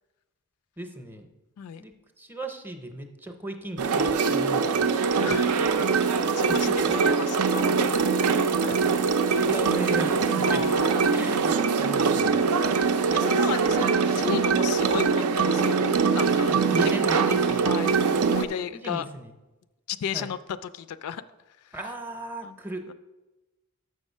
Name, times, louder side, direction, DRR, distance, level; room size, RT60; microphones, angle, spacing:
voice 1, 0.8-1.3 1.8-4.9 6.4-6.8 8.8-10.6 11.1-12.5 16.5-17.7 18.7-19.3 20.1-20.3 21.7-22.9, right 1 dB, 10° right, 6 dB, 0.6 m, -36 dB
sound 1, 3.8-18.5, right 5 dB, 75° right, 0.5 m, -23 dB
voice 2, 5.2-8.8 10.4-11.4 13.1-19.1 19.9-21.2 22.4-22.6, left 8 dB, 75° left, 15 dB, 0.3 m, -35 dB
6.5 x 6.2 x 5.4 m, 1.1 s
head